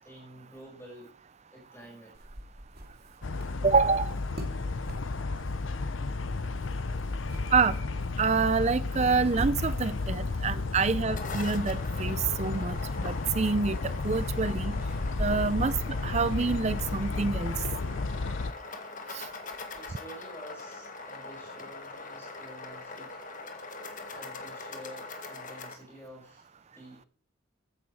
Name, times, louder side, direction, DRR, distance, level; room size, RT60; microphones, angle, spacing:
voice 1, 0.0-1.1 1.5-2.1 19.7-23.7 24.1-27.1, equal, 10° left, 5.8 m, -50 dB
sound 1, 2.1-17.4, equal, 50° right, 2.6 m, -45 dB
sound 2, 3.2-18.5, left 3 dB, 70° left, 0.7 m, -33 dB
voice 2, 3.6-4.1 7.5-7.8 8.2-14.8 15.2-15.7 16.0-17.5 19.1-19.2, right 4 dB, 35° right, 0.5 m, -27 dB
sound 3, 10.9-25.7, left 3 dB, 40° left, 1.7 m, -42 dB
15.0 x 10.0 x 4.8 m
head